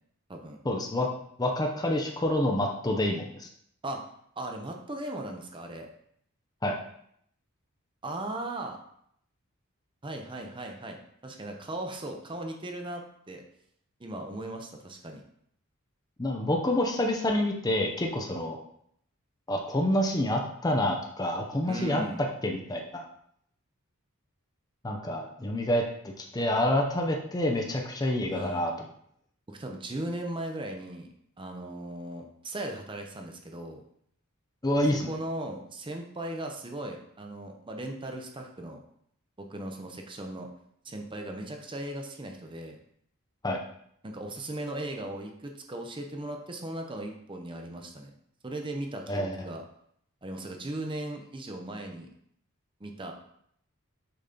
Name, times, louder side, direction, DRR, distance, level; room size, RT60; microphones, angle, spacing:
voice 1, 0.6-1.1 1.4-3.5 6.6-6.8 16.2-18.6 19.5-22.0 22.4-23.0 24.8-28.7 34.6-35.1 43.4-43.6 49.1-49.4, left 1 dB, 20° left, 1 dB, 0.6 m, -28 dB
voice 2, 4.4-5.9 8.0-8.8 10.0-13.0 13.3-13.4 14.0-15.2 21.7-22.2 28.3-28.6 29.5-31.1 31.4-33.8 35.1-38.8 39.4-40.5 40.8-42.8 44.0-48.1 48.4-49.6 50.2-52.1 52.8-53.1, right 1 dB, 25° right, 3 dB, 0.7 m, -37 dB
6.7 x 4.1 x 3.8 m, 0.69 s
head